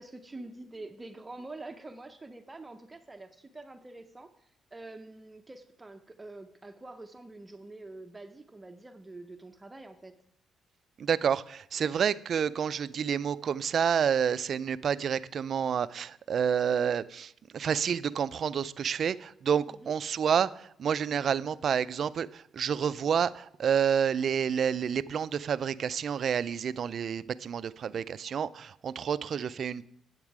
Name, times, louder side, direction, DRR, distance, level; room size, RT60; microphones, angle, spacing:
voice 1, 0.0-10.2 19.7-19.9, right 2 dB, 20° right, 7 dB, 0.6 m, -46 dB
voice 2, 11.0-29.9, right 7 dB, 55° right, 17 dB, 0.3 m, -29 dB
8.9 x 8.0 x 4.7 m, 0.72 s
cardioid pair, 90°, 0 cm